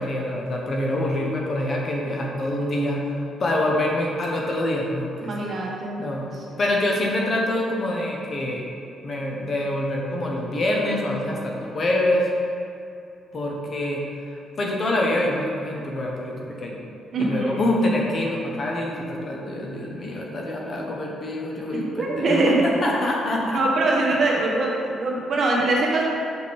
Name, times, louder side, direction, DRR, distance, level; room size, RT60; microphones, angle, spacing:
voice 1, 0.0-5.5 6.0-6.3 6.6-8.7 9.0-12.3 13.3-14.0 14.3-16.8 17.2-23.6, left 1 dB, 45° left, -1 dB, 1.1 m, -25 dB
voice 2, 5.2-6.0 17.1-17.7 21.7-22.6 23.5-26.0, right 2 dB, 50° right, -3 dB, 1.4 m, -23 dB
6.1 x 5.3 x 3.6 m, 2.6 s
cardioid pair, 90°, 0 cm